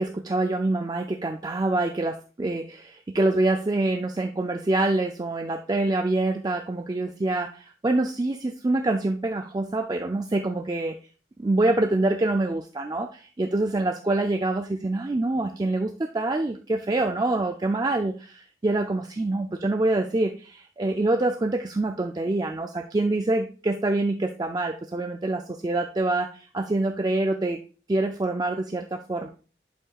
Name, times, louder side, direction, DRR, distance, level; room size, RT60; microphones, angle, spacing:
voice 1, 0.0-11.0 11.4-27.6 27.9-29.3, right 2 dB, 20° right, 5 dB, 0.4 m, -26 dB
11.0 x 5.4 x 2.4 m, 0.38 s
head